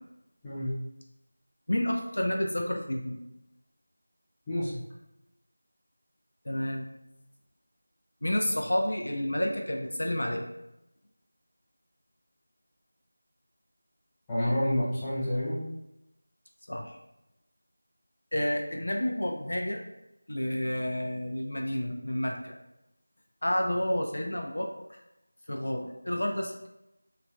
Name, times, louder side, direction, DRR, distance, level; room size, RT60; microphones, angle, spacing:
voice 1, 0.4-0.8 4.5-4.8 14.3-15.6, left 1 dB, 10° left, -12 dB, 0.6 m, -29 dB
voice 2, 1.7-3.2 6.5-6.9 8.2-10.5 16.7-16.9 18.3-19.8 20.3-22.6 23.4-25.0 25.5-26.7, left 1 dB, 70° left, 2 dB, 0.4 m, -30 dB
3.1 x 2.0 x 2.6 m, 0.90 s
figure-of-eight pair, 175°, 0 cm